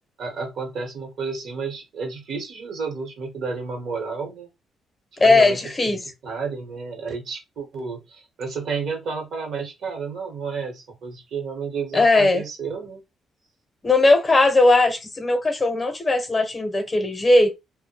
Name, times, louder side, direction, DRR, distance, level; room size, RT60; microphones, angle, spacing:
voice 1, 0.2-4.5 5.2-5.6 5.8-13.0, right 5 dB, 70° right, 0.9 m, -31 dB
voice 2, 5.2-6.0 11.9-12.4 13.8-17.6, left 2 dB, 25° left, 0.7 m, -18 dB
2.2 x 2.0 x 2.8 m
cardioid pair, 90°, 0 cm